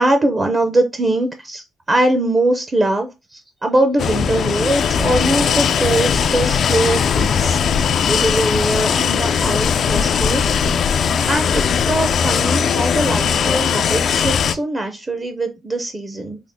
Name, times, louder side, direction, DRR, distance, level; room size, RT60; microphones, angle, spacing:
voice 1, 0.0-7.6 8.1-10.7 11.3-16.4, right 1 dB, 25° right, 0.6 m, -21 dB
sound 1, 4.0-14.5, left 7 dB, 60° left, 0.3 m, -19 dB
3.5 x 2.1 x 3.5 m
cardioid pair, 90°, 0 cm